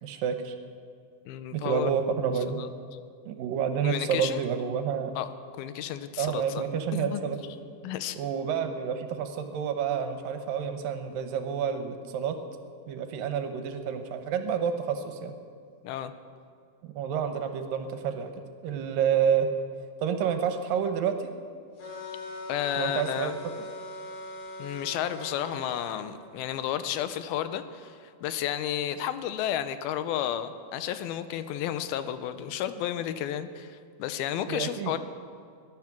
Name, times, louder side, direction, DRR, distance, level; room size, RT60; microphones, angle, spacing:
voice 1, 0.0-0.6 1.5-2.6 3.3-5.1 6.2-7.4 8.2-12.4 12.9-15.3 16.8-18.3 18.6-19.5 20.0-21.3 22.8-23.3 34.5-34.9, right 7 dB, 75° right, 7 dB, 2.5 m, -29 dB
voice 2, 1.3-1.9 2.6-2.7 3.8-4.4 5.2-5.3 5.6-6.6 6.9-7.3 7.8-8.2 15.8-16.1 22.5-23.4 24.6-35.0, left 11 dB, 90° left, 11 dB, 2.6 m, -32 dB
sound 1, 21.8-25.9, left 1 dB, 70° left, 4.6 m, -40 dB
19.5 x 11.0 x 6.0 m, 2.3 s
omnidirectional pair, 4.2 m